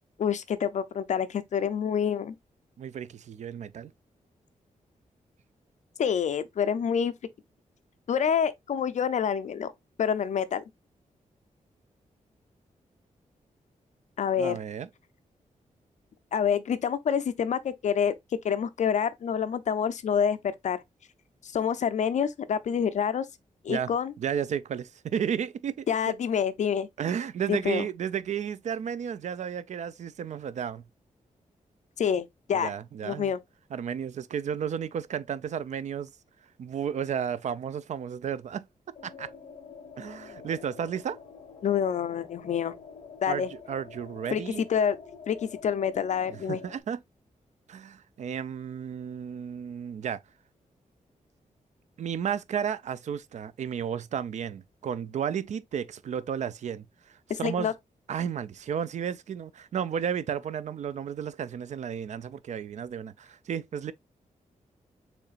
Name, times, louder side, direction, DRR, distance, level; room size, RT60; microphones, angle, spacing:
voice 1, 0.2-2.3 6.0-7.1 8.1-9.7 10.0-10.6 14.2-14.6 16.3-18.1 18.4-20.4 20.6-20.8 21.4-23.3 23.6-24.1 25.9-26.9 27.5-27.9 32.0-32.7 33.0-33.4 41.6-42.7 43.2-43.5 44.3-44.4 44.7-45.0 45.3-46.6 57.3-57.7, left 7 dB, 60° left, 0.4 m, -27 dB
voice 2, 2.8-3.9 14.4-14.9 23.7-23.9 24.2-26.2 27.0-30.8 32.5-33.3 33.7-36.1 36.6-38.7 39.0-39.3 40.0-41.2 43.3-44.7 46.3-47.0 47.7-50.2 52.0-56.8 57.4-57.7 58.1-63.9, right 8 dB, 60° right, 0.4 m, -33 dB
sound 1, 38.9-46.8, left 5 dB, 40° left, 1.5 m, -47 dB
6.6 x 3.2 x 2.4 m
wide cardioid pair, 160°, 14 cm